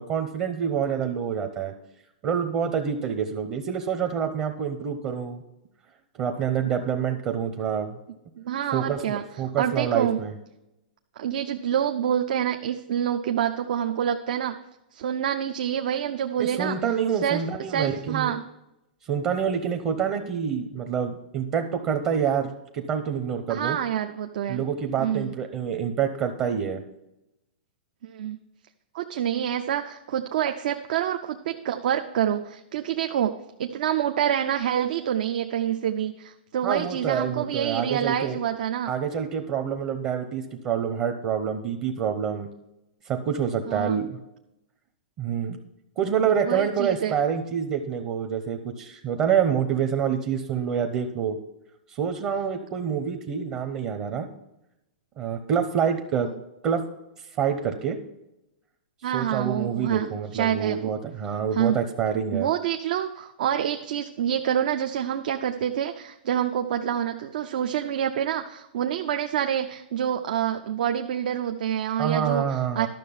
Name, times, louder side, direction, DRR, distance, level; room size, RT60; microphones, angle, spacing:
voice 1, 0.0-1.7 2.2-5.4 6.2-8.0 8.7-10.4 16.4-18.4 19.1-23.8 24.5-26.8 36.6-38.4 38.9-42.5 43.1-44.2 45.2-45.6 46.0-51.4 51.9-54.3 55.2-56.3 56.6-56.8 57.4-58.0 59.1-62.5 72.0-72.9, right 7 dB, 30° right, 5 dB, 0.8 m, -27 dB
voice 2, 8.4-9.2 9.6-10.2 11.2-14.6 14.9-16.8 17.2-17.4 17.7-18.4 23.5-24.6 25.0-25.3 28.0-28.4 28.9-38.9 43.7-44.0 46.5-47.1 59.0-60.9 61.5-61.8 62.3-72.9, right 9 dB, 60° right, 6 dB, 0.6 m, -27 dB
12.0 x 6.4 x 5.5 m, 0.88 s
hypercardioid pair, 155°, 5 cm